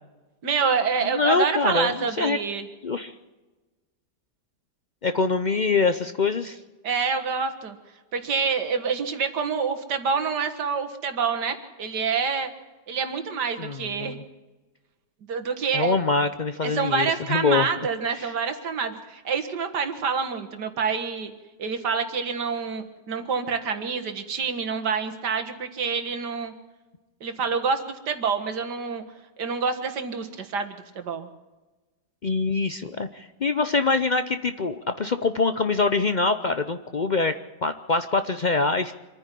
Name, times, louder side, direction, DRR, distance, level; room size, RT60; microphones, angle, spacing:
voice 1, 0.4-2.7 6.8-7.8 8.1-12.5 12.9-14.2 15.3-16.0 16.6-21.3 21.6-26.5 27.2-29.0 29.4-31.3, right 5 dB, 70° right, 7 dB, 2.2 m, -27 dB
voice 2, 1.0-2.4 2.8-3.1 5.0-6.6 13.6-14.2 15.7-17.7 18.2-18.3 32.2-38.9, left 4 dB, 75° left, 10 dB, 0.4 m, -24 dB
26.0 x 10.0 x 10.0 m, 1.2 s
omnidirectional pair, 1.9 m